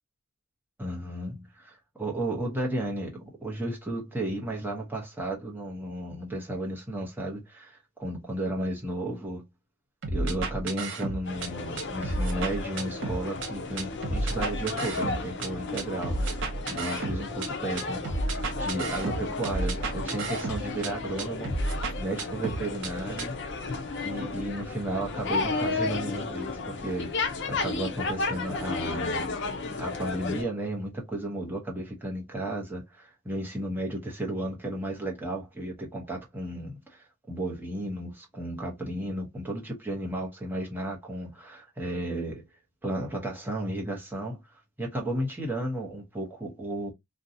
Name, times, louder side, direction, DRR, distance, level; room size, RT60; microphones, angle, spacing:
voice 1, 0.8-9.5 10.1-21.5 22.0-23.3 24.0-29.3 29.8-42.4 42.8-44.4 44.8-46.9, right 1 dB, 10° right, 0.8 m, -34 dB
sound 1, 10.0-11.5 11.8-13.5 13.8-15.5 15.8-17.5 17.8-20.9 21.2-22.9 23.2-23.3, right 2 dB, 55° right, 0.6 m, -31 dB
sound 2, 11.2-30.4, left 3 dB, 55° left, 0.6 m, -33 dB
2.6 x 2.2 x 2.5 m
head